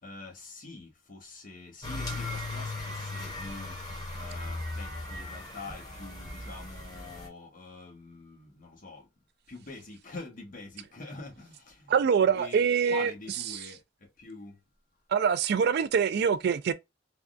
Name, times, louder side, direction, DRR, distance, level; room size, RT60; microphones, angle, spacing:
voice 1, 0.0-9.1 9.5-11.9 12.2-14.6, left 3 dB, 50° left, 1.0 m, -45 dB
sound 1, 1.8-7.3, left 2 dB, 20° left, 1.4 m, -37 dB
voice 2, 11.9-13.1 15.1-16.7, right 6 dB, 60° right, 0.3 m, -24 dB
3.4 x 2.3 x 2.4 m
head